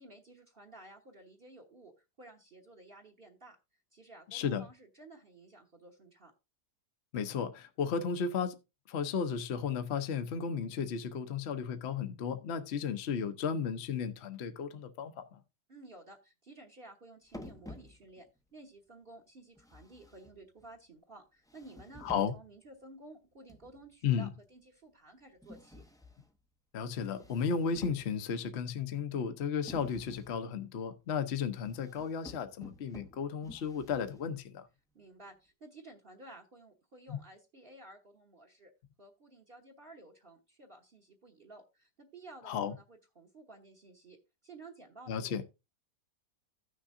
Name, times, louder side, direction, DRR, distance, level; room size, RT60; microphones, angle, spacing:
voice 1, 0.0-3.6 3.9-6.3 15.7-25.8 34.9-38.7 39.0-45.4, right 2 dB, 35° right, 1.3 m, -54 dB
voice 2, 4.3-4.6 7.1-8.6 8.9-15.4 22.0-22.3 24.0-24.3 26.7-34.7 37.1-37.2 42.4-42.7 45.1-45.4, left 6 dB, 50° left, 1.0 m, -34 dB
sound 1, 17.3-18.4 19.6-20.8 21.5-22.6 23.5-23.9 25.4-26.4 27.0-28.5 29.7-30.4 31.6-34.4, left 1 dB, 5° left, 0.5 m, -51 dB
15.0 x 6.4 x 2.6 m
omnidirectional pair, 1.7 m